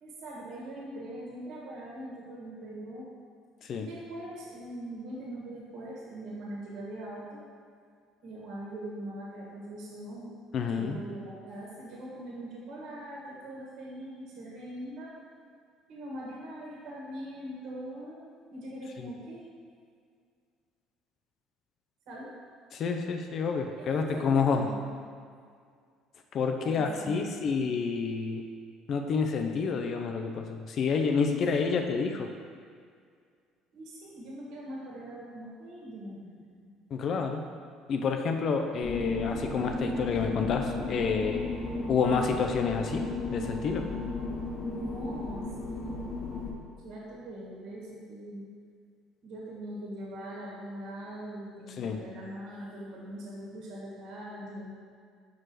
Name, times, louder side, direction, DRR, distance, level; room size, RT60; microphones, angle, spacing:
voice 1, 0.0-3.1 3.8-7.4 8.2-10.4 10.7-15.1 15.9-18.2 18.5-19.5 22.0-22.3 23.5-24.7 26.5-27.2 31.3-31.7 33.7-36.7 44.7-46.5 46.8-48.4 49.2-54.7, right 1 dB, 60° right, -4 dB, 1.7 m, -42 dB
voice 2, 10.5-11.0 22.7-24.7 26.3-28.4 28.9-32.3 36.9-37.4 37.9-41.4 41.9-43.9 51.8-52.0, left 5 dB, 50° left, 4 dB, 0.5 m, -29 dB
sound 1, 38.8-46.5, left 2 dB, 25° left, 1.1 m, -34 dB
5.9 x 4.7 x 4.8 m, 2.1 s
hypercardioid pair, 60°, 0 cm